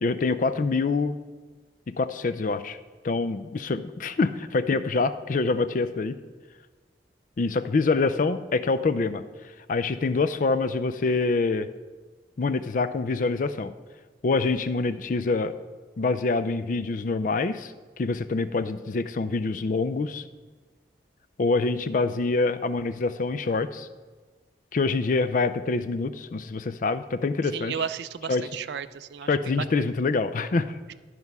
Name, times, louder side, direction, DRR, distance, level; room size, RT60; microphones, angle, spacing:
voice 1, 0.0-1.2 1.9-2.8 3.0-6.2 7.4-9.2 9.7-11.7 12.4-13.7 14.2-15.6 16.0-20.2 21.4-23.9 24.7-27.7 28.3-28.4 29.3-30.7, left 3 dB, 45° left, 13 dB, 0.4 m, -25 dB
voice 2, 27.4-29.9 30.9-31.0, right 7 dB, 65° right, 14 dB, 0.4 m, -34 dB
12.5 x 4.7 x 5.5 m, 1.4 s
head